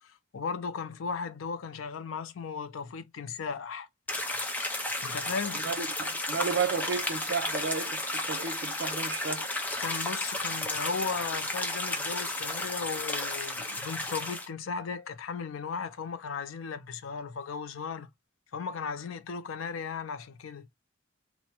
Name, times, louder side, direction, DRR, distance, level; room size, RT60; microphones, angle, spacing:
voice 1, 0.3-3.9 5.0-5.6 9.8-18.1 18.5-20.7, left 5 dB, 85° left, 0.4 m, -36 dB
sound 1, 4.1-14.5, left 2 dB, 10° left, 0.4 m, -33 dB
voice 2, 5.6-9.5, right 5 dB, 60° right, 0.5 m, -33 dB
3.3 x 2.1 x 2.8 m
head